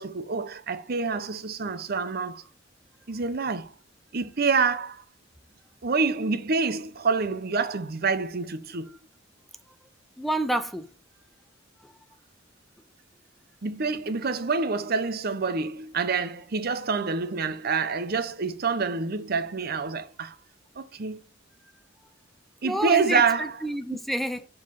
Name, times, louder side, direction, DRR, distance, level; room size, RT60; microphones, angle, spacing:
voice 1, 0.0-2.4 3.1-3.7 4.1-5.0 5.8-8.9 13.6-20.4 20.8-21.2 22.6-23.5 23.9-24.0, right 4 dB, 55° right, 0.8 m, -27 dB
voice 2, 10.2-10.9 11.8-12.0 22.6-24.5, right 1 dB, ahead, 0.5 m, -29 dB
7.8 x 3.9 x 5.9 m
head